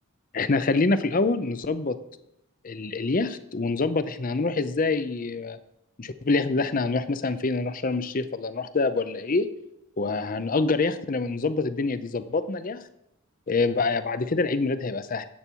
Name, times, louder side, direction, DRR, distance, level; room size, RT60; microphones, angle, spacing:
voice 1, 0.3-2.0 2.6-5.6 6.0-9.5 10.0-12.8 13.5-15.3, left 3 dB, 40° left, 13 dB, 0.6 m, -26 dB
10.5 x 8.4 x 4.5 m, 0.83 s
head